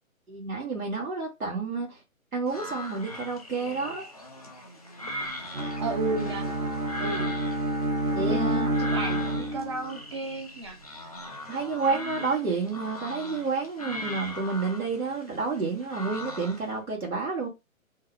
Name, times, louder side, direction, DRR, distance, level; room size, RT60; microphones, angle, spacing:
voice 1, 0.3-2.0 2.3-4.0 8.1-8.7 11.5-17.5, right 4 dB, 90° right, 1.6 m, -30 dB
sound 1, 2.5-16.8, left 1 dB, 30° left, 0.4 m, -40 dB
Bowed string instrument, 5.5-10.0, right 1 dB, 70° right, 1.4 m, -29 dB
voice 2, 5.8-6.5 7.0-7.4 8.2-10.8, right 3 dB, 20° right, 0.5 m, -33 dB
3.8 x 2.0 x 2.5 m
figure-of-eight pair, 140°, 42 cm